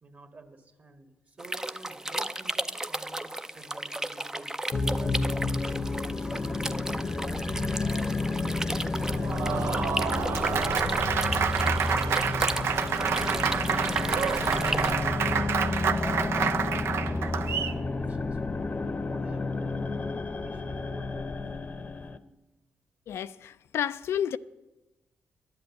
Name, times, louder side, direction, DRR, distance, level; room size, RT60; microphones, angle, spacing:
voice 1, 0.0-5.5 6.0-9.8 10.2-11.0 11.3-12.4 13.2-16.3 17.0-20.2 20.4-21.5, right 2 dB, 40° right, 1.7 m, -49 dB
sound 1, 1.4-14.9, right 1 dB, 10° right, 0.5 m, -35 dB
sound 2, 4.7-22.2, left 3 dB, 35° left, 0.7 m, -31 dB
Applause, 9.1-17.8, right 7 dB, 70° right, 0.5 m, -28 dB
voice 2, 23.1-24.4, left 9 dB, 75° left, 0.4 m, -31 dB
11.0 x 7.9 x 8.3 m
cardioid pair, 65°, 4 cm